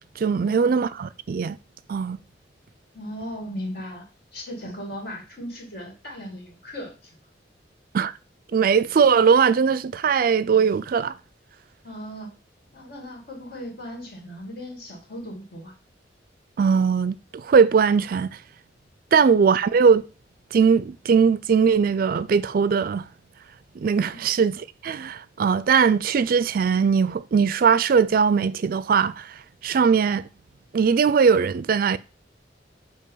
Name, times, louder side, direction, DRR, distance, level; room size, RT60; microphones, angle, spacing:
voice 1, 0.2-1.6 1.9-2.2 7.9-8.1 8.5-11.2 16.6-18.4 19.1-20.0 20.5-23.1 23.8-30.3 30.7-32.0, right 6 dB, 55° right, 0.4 m, -20 dB
voice 2, 2.9-4.1 4.3-6.9 11.8-12.3 12.7-15.7 19.1-19.2 24.1-24.2, equal, 60° left, 2.4 m, -37 dB
8.4 x 2.9 x 5.5 m
head